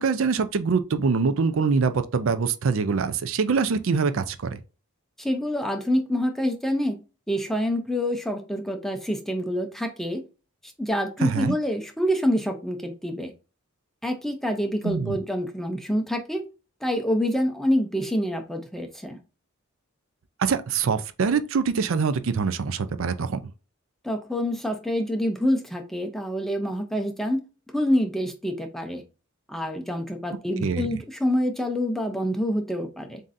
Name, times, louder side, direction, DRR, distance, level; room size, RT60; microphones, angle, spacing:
voice 1, 0.0-4.6 11.2-11.5 14.8-15.2 20.4-23.4 30.6-30.9, right 5 dB, 65° right, 0.4 m, -24 dB
voice 2, 5.2-7.0 7.3-10.2 10.6-13.3 14.0-16.4 16.8-19.2 24.0-27.4 27.7-29.0 29.5-33.2, equal, ahead, 0.6 m, -26 dB
7.2 x 2.7 x 2.6 m
head